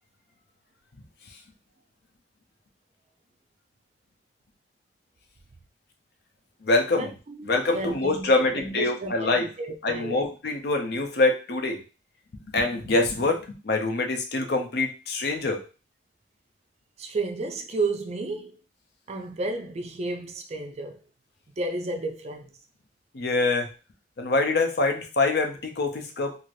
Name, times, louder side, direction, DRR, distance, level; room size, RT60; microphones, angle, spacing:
voice 1, 6.6-7.1 7.4-9.5 9.8-11.8 12.4-15.6 23.1-23.7 24.2-26.4, left 2 dB, 60° left, 0.6 m, -25 dB
voice 2, 7.4-9.3 9.6-10.3 17.0-18.5 19.1-21.0 21.6-22.5, right 2 dB, 35° right, 0.4 m, -32 dB
2.6 x 2.5 x 3.1 m
head